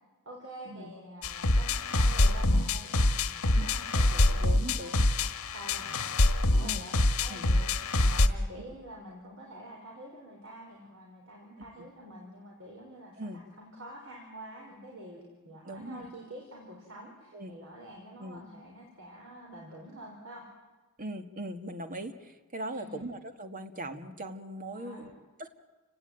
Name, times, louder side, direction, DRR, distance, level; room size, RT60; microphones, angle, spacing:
voice 1, 0.2-5.3 5.5-6.0 6.5-20.4 22.7-23.1 24.7-25.1, right 1 dB, 65° right, -1 dB, 4.9 m, -47 dB
sound 1, 1.2-8.3, left 2 dB, 75° left, 1.5 m, -25 dB
voice 2, 4.4-5.1 6.6-6.9 7.3-7.5 8.0-8.1 8.6-8.7 13.2-13.4 15.6-16.1 17.3-17.5 18.2-18.4 21.0-25.5, right 1 dB, 40° right, 7 dB, 1.8 m, -40 dB
29.5 x 17.5 x 9.1 m, 1.2 s
head